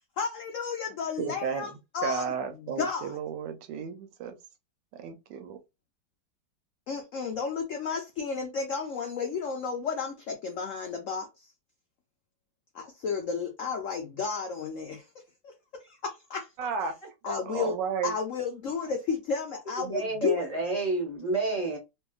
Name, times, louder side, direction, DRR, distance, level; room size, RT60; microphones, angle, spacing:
voice 1, 0.2-3.2 6.9-11.5 12.7-15.1 15.4-15.5 15.8-16.9 17.2-17.8 18.0-20.4, left 5 dB, 90° left, 0.6 m, -33 dB
voice 2, 1.2-4.3 5.0-5.6 16.6-16.9 17.5-18.1, right 6 dB, 80° right, 1.2 m, -33 dB
voice 3, 19.8-21.8, right 3 dB, 30° left, 0.8 m, -29 dB
2.8 x 2.5 x 2.3 m
omnidirectional pair, 2.0 m